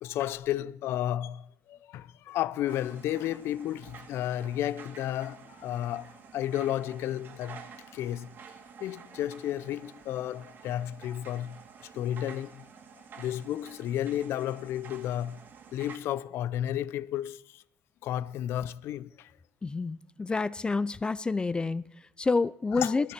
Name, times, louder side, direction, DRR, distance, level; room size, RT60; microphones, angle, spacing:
voice 1, 0.0-7.6 7.9-8.3 8.8-11.6 11.9-12.6 13.2-15.4 15.7-17.6 18.0-19.3 22.8-23.1, left 12 dB, 75° left, 0.6 m, -32 dB
sound 1, 2.6-16.0, right 6 dB, 50° right, 2.3 m, -50 dB
voice 2, 19.6-23.1, left 3 dB, 20° left, 0.5 m, -29 dB
16.0 x 12.5 x 6.0 m
cardioid pair, 100°, 4 cm